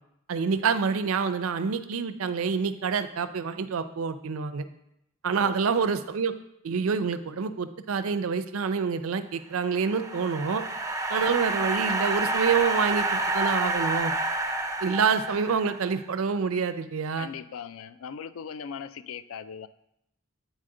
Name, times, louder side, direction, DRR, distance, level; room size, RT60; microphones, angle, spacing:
voice 1, 0.3-4.6 5.2-6.3 6.6-10.6 11.1-14.1 14.8-17.3, right 5 dB, 75° right, 11 dB, 0.5 m, -27 dB
sound 1, 9.6-16.0, right 2 dB, 15° right, 0.4 m, -29 dB
voice 2, 17.2-19.7, left 7 dB, 70° left, 13 dB, 0.4 m, -39 dB
9.0 x 4.1 x 3.8 m, 0.79 s
head